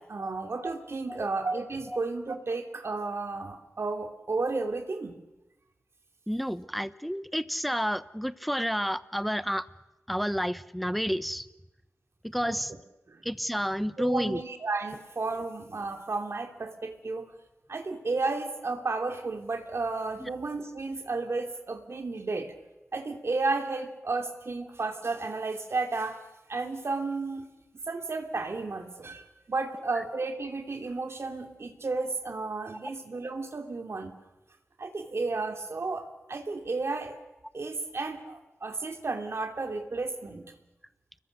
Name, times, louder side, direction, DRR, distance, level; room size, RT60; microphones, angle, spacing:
voice 1, 0.0-5.1 12.4-12.6 13.1-13.2 14.0-17.3 17.7-22.5 22.9-27.5 27.9-34.1 34.8-37.2 37.5-40.4, right 3 dB, 60° right, 5 dB, 2.8 m, -33 dB
voice 2, 6.3-9.7 10.1-11.5 12.2-12.7 13.2-14.4 20.2-20.3 29.9-30.0, equal, ahead, 14 dB, 0.9 m, -30 dB
29.0 x 21.5 x 6.6 m, 1.0 s
wide cardioid pair, 65°, 5 cm